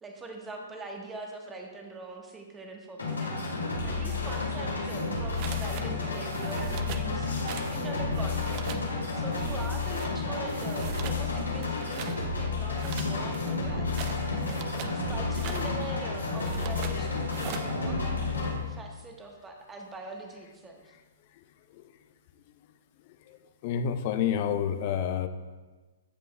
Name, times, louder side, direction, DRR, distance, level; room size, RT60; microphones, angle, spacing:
voice 1, 0.0-8.6 9.1-14.2 14.7-20.9, right 2 dB, 15° right, 2 dB, 1.2 m, -43 dB
sound 1, 3.0-18.5, left 3 dB, 90° left, 2.2 m, -31 dB
sound 2, 5.4-5.9 6.1-7.1 7.5-7.8 8.1-8.9 9.3-10.1 10.5-11.2 11.6-12.2 12.8-15.0 15.3-15.7 16.3-17.0 17.3-17.7, right 9 dB, 40° right, 0.6 m, -42 dB
voice 2, 23.6-25.3, left 8 dB, 45° left, 9 dB, 0.6 m, -28 dB
15.5 x 5.2 x 2.2 m, 1.3 s
hypercardioid pair, 120°, 0 cm